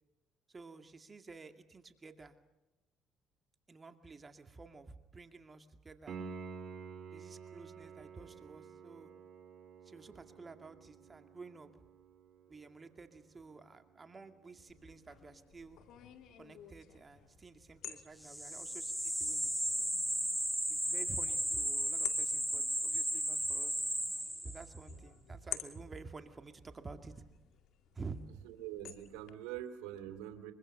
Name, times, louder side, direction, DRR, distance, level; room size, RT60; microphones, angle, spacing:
voice 1, 0.5-2.4 3.7-6.2 7.1-9.1 9.8-11.8 12.5-15.8 16.4-19.5 20.7-23.8 24.4-27.2 27.9-28.3, right 4 dB, 30° right, 7 dB, 2.2 m, -51 dB
Piano, 6.1-16.7 20.0-20.1, right 5 dB, 55° right, 2.6 m, -52 dB
sound 1, 14.7-29.3, left 11 dB, 70° left, 2.3 m, -51 dB
sound 2, 18.2-24.8, equal, ahead, 1.5 m, -35 dB
voice 2, 28.4-30.5, right 11 dB, 85° right, 8 dB, 3.1 m, -44 dB
24.0 x 24.0 x 6.6 m, 0.97 s
supercardioid pair, 80°, 0 cm